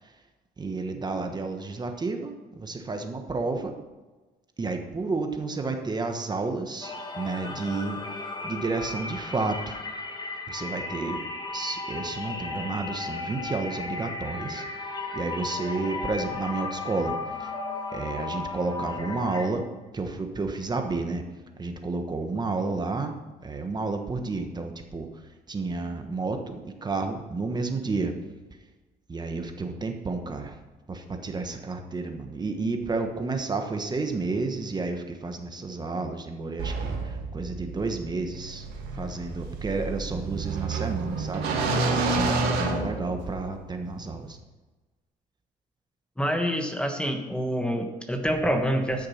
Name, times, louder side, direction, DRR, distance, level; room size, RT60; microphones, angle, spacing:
voice 1, 0.6-3.7 4.6-9.8 10.5-11.2 11.5-17.1 17.4-17.5 17.9-19.7 19.9-21.2 21.6-23.1 23.4-28.1 29.1-30.6 30.9-38.7 38.9-41.8 42.1-44.4, right 3 dB, 25° right, 5 dB, 1.2 m, -31 dB
sound 1, 6.8-19.5, left 3 dB, 25° left, 1.4 m, -35 dB
sound 2, 36.6-43.5, right 3 dB, 90° right, 2.2 m, -29 dB
voice 2, 46.2-49.1, equal, 5° left, 4 dB, 1.1 m, -26 dB
12.5 x 6.6 x 5.7 m, 1.2 s
cardioid pair, 110°, 17 cm